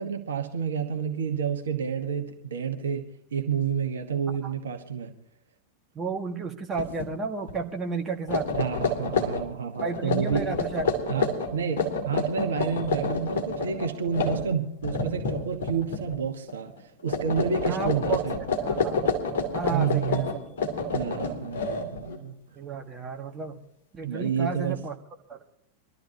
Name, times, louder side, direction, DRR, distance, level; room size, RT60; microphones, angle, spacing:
voice 1, 0.0-5.1 8.6-10.5 11.1-18.4 19.7-20.3 20.9-22.3 24.0-24.8, right 7 dB, 65° right, 1.2 m, -29 dB
voice 2, 5.9-8.5 9.8-10.9 17.7-18.2 18.6-19.1 19.5-20.5 22.5-23.6 23.9-25.0 25.3-25.4, right 4 dB, 20° right, 1.6 m, -32 dB
sound 1, 6.7-7.1 7.4-7.6 8.1-16.2 16.5-16.8 17.1-22.2, left 3 dB, 55° left, 2.7 m, -29 dB
23.5 x 13.0 x 2.9 m
figure-of-eight pair, 90°, 0 cm